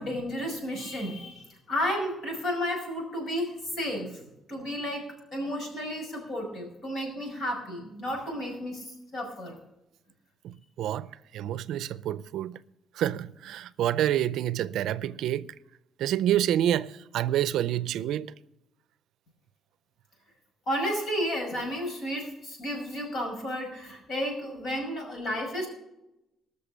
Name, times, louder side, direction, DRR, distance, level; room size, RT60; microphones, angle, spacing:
voice 1, 0.0-4.2 4.5-5.0 5.3-9.6 20.7-25.7, equal, 50° left, 5.9 m, -32 dB
voice 2, 10.4-12.6 12.9-15.5 16.0-18.3, right 11 dB, 80° right, 0.5 m, -28 dB
19.0 x 6.7 x 6.7 m
cardioid pair, 160°, 0 cm